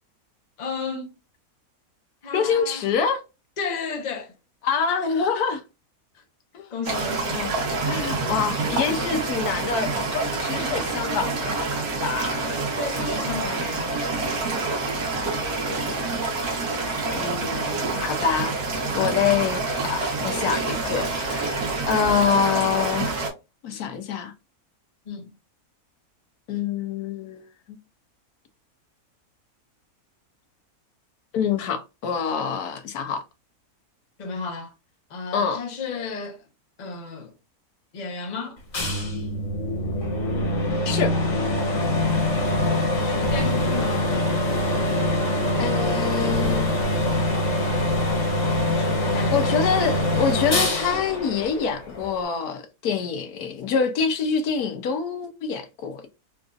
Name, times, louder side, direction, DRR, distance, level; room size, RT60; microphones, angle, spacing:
voice 1, 0.6-1.1 2.2-2.8 3.6-4.3 6.1-6.2 6.7-7.8 12.4-14.1 25.1-25.3 34.2-34.7 35.1-36.4 36.8-37.3 37.9-38.6 43.0-44.0 48.7-49.7, left 4 dB, 35° left, 0.7 m, -33 dB
voice 2, 2.3-3.2 4.6-5.6 6.5-6.7 7.3-7.5 7.8-11.7 12.0-12.4 15.1-15.4 15.7-16.2 17.2-23.2 23.6-24.3 26.5-27.8 31.3-33.2 35.3-35.6 40.8-41.2 45.6-46.8 49.3-56.1, left 6 dB, 85° left, 1.2 m, -26 dB
sound 1, 6.8-23.3, right 3 dB, 70° right, 1.6 m, -27 dB
sound 2, 38.7-52.2, left 1 dB, 55° left, 1.8 m, -24 dB
4.0 x 2.5 x 2.4 m
omnidirectional pair, 1.6 m